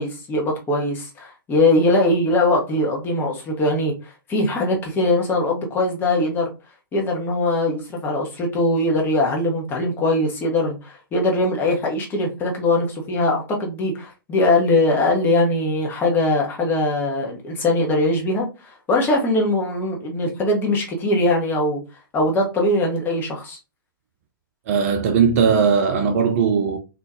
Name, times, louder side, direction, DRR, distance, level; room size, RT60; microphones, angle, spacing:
voice 1, 0.0-6.5 6.9-21.8 22.1-23.6, left 2 dB, 15° left, 1.0 m, -21 dB
voice 2, 24.7-26.8, right 6 dB, 40° right, 0.4 m, -18 dB
3.6 x 2.5 x 2.6 m
figure-of-eight pair, 115°, 12 cm